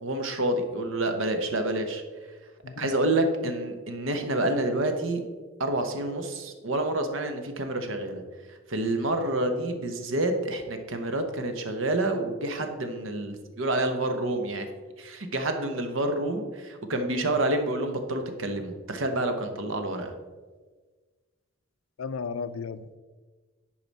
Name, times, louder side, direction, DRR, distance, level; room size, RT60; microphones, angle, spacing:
voice 1, 0.0-2.0 2.8-5.2 5.6-8.2 8.7-14.7 15.0-20.1, right 1 dB, 70° right, 6 dB, 1.0 m, -28 dB
voice 2, 22.0-23.0, left 5 dB, 80° left, 14 dB, 0.4 m, -34 dB
10.5 x 4.9 x 4.1 m, 1.4 s
head